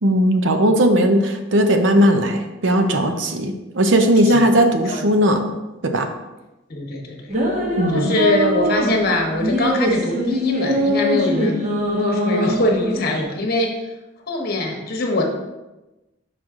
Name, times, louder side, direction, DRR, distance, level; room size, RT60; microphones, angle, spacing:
voice 1, 0.0-5.4 5.8-6.1 7.8-8.2, equal, 65° right, 5 dB, 0.7 m, -17 dB
voice 2, 6.7-7.3 7.9-13.7 14.3-15.2, left 1 dB, 50° left, 1 dB, 1.1 m, -23 dB
sound 1, 7.3-13.2, equal, 40° right, 1.1 m, -22 dB
6.2 x 5.0 x 3.7 m, 1.0 s
head